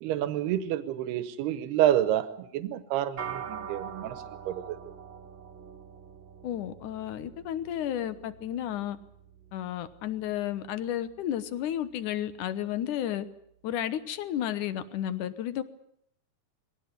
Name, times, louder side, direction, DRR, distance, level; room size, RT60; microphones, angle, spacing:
voice 1, 0.0-4.2 4.5-4.8, right 12 dB, 90° right, 12 dB, 3.1 m, -28 dB
sound 1, 3.2-12.7, right 7 dB, 45° right, 1.6 m, -45 dB
voice 2, 6.4-9.0 9.5-13.3 13.6-15.6, left 11 dB, 65° left, 13 dB, 2.2 m, -32 dB
22.0 x 17.0 x 9.3 m, 0.71 s
omnidirectional pair, 4.5 m